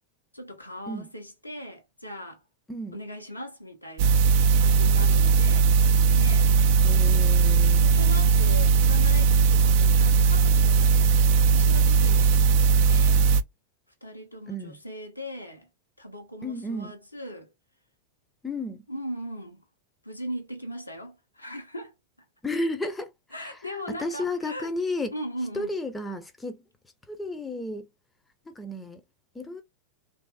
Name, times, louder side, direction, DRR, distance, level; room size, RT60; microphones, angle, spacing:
voice 1, 0.3-2.4 2.9-4.2 4.6-5.7 6.2-6.5 7.8-12.4 12.9-13.2 14.0-15.7 16.0-17.5 18.9-19.6 20.0-21.9 23.3-24.7 25.1-25.7, equal, 85° left, 1.0 m, -39 dB
voice 2, 2.7-3.0 6.8-7.8 14.5-14.8 16.4-16.9 18.4-18.8 22.4-23.1 23.4-23.6 23.9-25.1 25.5-26.6 27.1-27.9 28.5-29.0 29.3-29.6, left 2 dB, 10° left, 0.6 m, -32 dB
sound 1, 4.0-13.4, right 5 dB, 45° right, 0.4 m, -19 dB
3.2 x 2.6 x 2.5 m
figure-of-eight pair, 90°, 0 cm